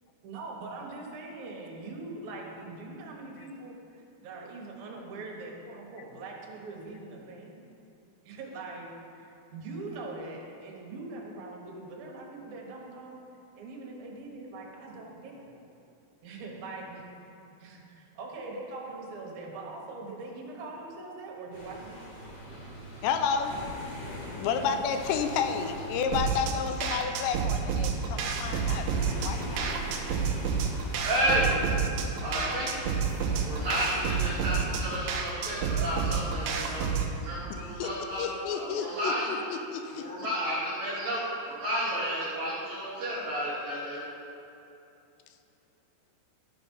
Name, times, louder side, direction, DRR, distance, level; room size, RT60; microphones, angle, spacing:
voice 1, 0.2-7.7 8.2-13.2 13.6-15.6 16.2-17.0 17.6-22.3 24.5-24.8, right 3 dB, 65° right, -1 dB, 2.7 m, -42 dB
sound 1, 21.5-37.6, equal, 50° left, 2.9 m, -42 dB
voice 2, 23.0-23.7 24.4-29.6 37.5-40.1, left 6 dB, 80° left, 7 dB, 2.7 m, -31 dB
sound 2, 26.1-37.1, right 6 dB, 80° right, 2.1 m, -30 dB
voice 3, 31.0-31.5 32.2-32.8 33.3-36.9 37.1-39.4 39.9-44.1, equal, 45° right, -11 dB, 1.9 m, -31 dB
13.5 x 6.0 x 5.4 m, 2.8 s
omnidirectional pair, 5.2 m